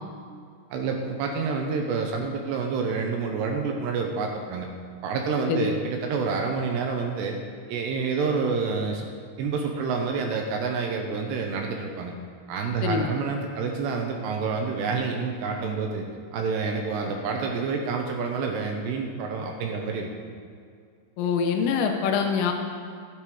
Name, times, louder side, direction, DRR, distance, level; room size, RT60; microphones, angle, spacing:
voice 1, 0.7-4.7 5.0-7.4 7.7-9.1 9.4-12.1 12.5-16.1 16.3-20.1, right 5 dB, 75° right, 2 dB, 2.7 m, -28 dB
voice 2, 12.8-13.1 21.2-22.5, left 6 dB, 90° left, 4 dB, 3.5 m, -24 dB
13.0 x 8.6 x 4.8 m, 2.2 s
omnidirectional pair, 5.5 m